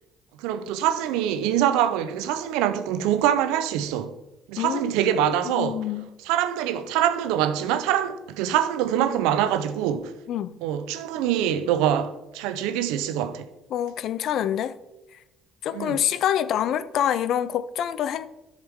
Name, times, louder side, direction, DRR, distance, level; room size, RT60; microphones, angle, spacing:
voice 1, 0.4-4.1 4.5-5.8 6.3-10.1 10.6-13.5 15.7-16.0, right 10 dB, 85° right, 0.6 m, -24 dB
voice 2, 4.6-5.1 5.6-6.1 10.3-10.6 13.7-14.8 15.1-15.2 15.6-18.3, left 10 dB, 70° left, 0.5 m, -26 dB
11.0 x 6.6 x 3.5 m
supercardioid pair, 70°, 0 cm